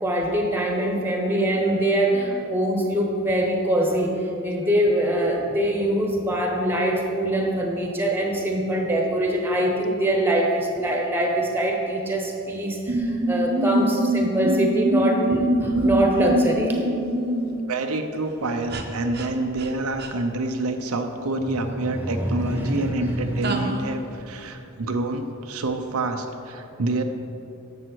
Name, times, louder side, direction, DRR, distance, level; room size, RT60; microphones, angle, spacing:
voice 1, 0.0-16.8 21.4-23.8, right 1 dB, 10° right, 0 dB, 1.1 m, -24 dB
sound 1, 12.9-17.7 18.7-18.8 19.1-19.3 19.6-19.7 20.0-20.1 23.4-24.0, right 1 dB, 45° right, 0.8 m, -24 dB
voice 2, 17.7-27.0, right 2 dB, 85° right, 5 dB, 0.7 m, -27 dB
11.0 x 7.2 x 4.6 m, 2.7 s
head